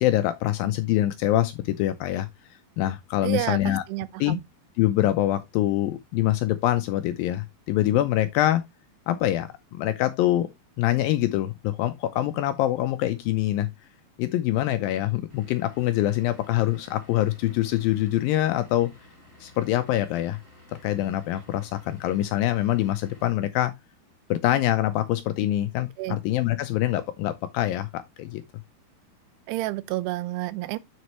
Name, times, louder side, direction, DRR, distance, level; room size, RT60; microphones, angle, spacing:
voice 1, 0.0-2.3 2.8-3.8 4.2-4.4 4.8-8.7 9.1-10.5 10.8-13.7 14.2-18.9 19.4-20.4 20.8-23.7 24.3-28.4, left 14 dB, 80° left, 2.1 m, -24 dB
voice 2, 3.2-4.4 26.0-26.2 29.5-30.8, right 17 dB, 90° right, 2.7 m, -30 dB
Vehicle / Engine, 15.3-23.3, left 1 dB, 20° right, 3.5 m, -54 dB
7.5 x 6.3 x 3.0 m
omnidirectional pair, 4.6 m